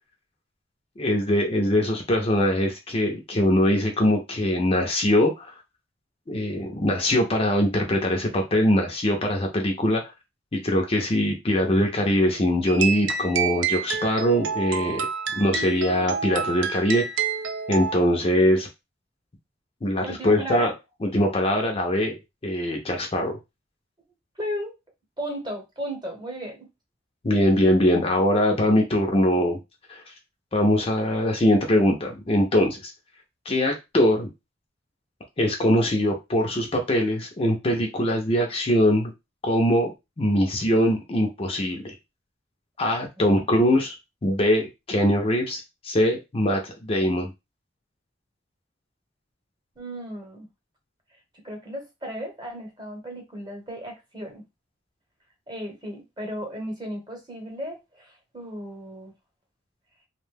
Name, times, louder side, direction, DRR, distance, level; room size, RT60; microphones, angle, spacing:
voice 1, 1.0-5.5 6.3-10.0 10.5-15.1 15.4-17.0 17.7-18.7 19.8-20.7 21.0-22.2 22.4-23.4 27.2-29.6 29.9-30.0 30.5-32.9 33.5-34.3 35.4-39.1 39.4-39.9 40.2-41.9 42.8-43.9 44.2-47.3, left 1 dB, 30° left, 2 dB, 0.5 m, -22 dB
sound 1, 12.7-18.0, right 6 dB, 85° right, 0.4 m, -28 dB
voice 2, 20.0-20.7 24.4-24.7 25.2-26.6 49.8-50.5 51.4-54.4 55.5-59.1, equal, 25° right, 1 dB, 1.0 m, -35 dB
2.7 x 2.1 x 3.2 m, 0.23 s
head